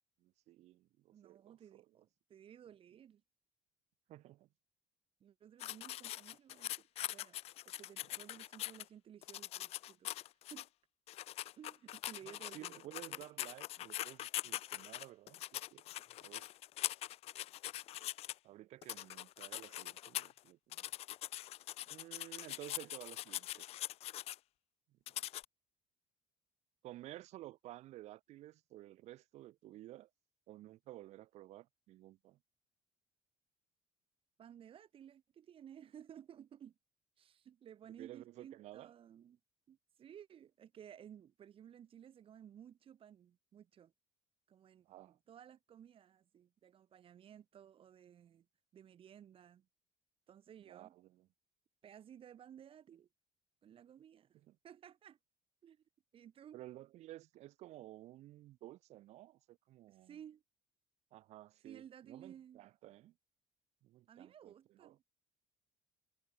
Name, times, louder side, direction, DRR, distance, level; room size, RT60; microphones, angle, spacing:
voice 1, 0.2-1.8 4.1-4.5 12.3-15.4 15.7-15.8 16.2-16.5 18.4-20.9 21.9-23.6 26.8-30.1 30.5-32.4 38.0-38.9 44.8-45.2 50.7-51.3 54.5-54.6 56.5-60.2 61.1-63.1 63.8-65.0, right 15 dB, 65° right, 0.6 m, -54 dB
voice 2, 1.1-3.2 5.2-7.4 7.7-10.7 11.6-13.2 34.4-36.8 37.2-39.4 39.7-43.9 44.5-48.5 48.7-49.7 50.3-51.0 51.8-53.1 53.6-54.4 54.6-55.2 55.6-55.8 56.1-56.6 59.9-60.4 61.6-62.7 64.1-65.0, right 9 dB, 50° right, 2.2 m, -57 dB
sound 1, 5.6-8.8 9.2-10.6 11.1-18.3 18.8-20.4 20.7-24.4 25.1-25.4, left 14 dB, 55° left, 0.4 m, -43 dB
cardioid pair, 105°, 12 cm